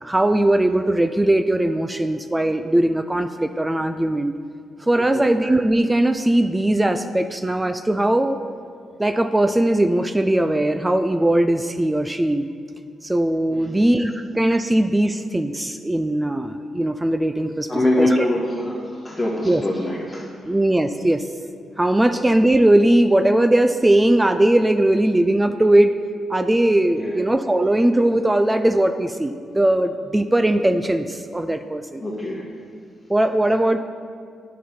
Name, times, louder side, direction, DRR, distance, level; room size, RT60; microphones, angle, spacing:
voice 1, 0.0-4.3 4.8-8.4 9.0-12.5 13.0-17.7 18.0-18.3 19.4-19.6 20.4-21.3 21.8-25.9 26.3-32.0 33.1-33.8, right 1 dB, 15° right, 9 dB, 0.4 m, -19 dB
voice 2, 17.7-20.3 27.0-27.2 32.0-32.4, left 1 dB, 15° left, -6 dB, 1.7 m, -24 dB
9.2 x 6.0 x 5.6 m, 2.2 s
supercardioid pair, 55°, 0 cm